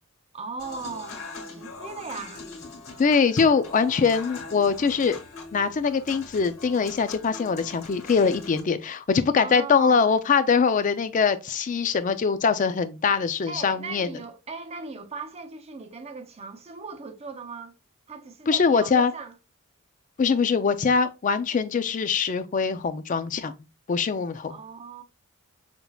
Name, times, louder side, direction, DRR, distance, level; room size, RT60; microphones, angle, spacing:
voice 1, 0.3-2.5 9.3-10.2 13.5-17.7 18.1-19.3 24.5-25.0, right 4 dB, 30° right, 0.5 m, -38 dB
Human voice / Acoustic guitar / Piano, 0.6-8.6, left 3 dB, 80° left, 1.8 m, -41 dB
voice 2, 3.0-5.2 5.5-14.1 18.5-19.1 20.2-23.5 23.9-24.6, left 5 dB, 35° left, 0.3 m, -23 dB
5.9 x 2.7 x 2.2 m
head